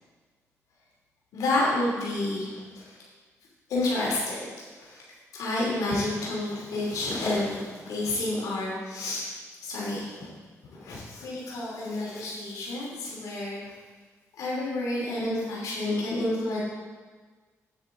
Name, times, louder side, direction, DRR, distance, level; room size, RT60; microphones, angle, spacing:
voice 1, 1.3-3.0 3.7-4.4 4.8-5.0 5.3-10.3 10.7-13.7 14.4-16.6, left 2 dB, 90° left, -6 dB, 2.9 m, -30 dB
9.8 x 9.0 x 3.8 m, 1.4 s
cardioid pair, 85°, 6 cm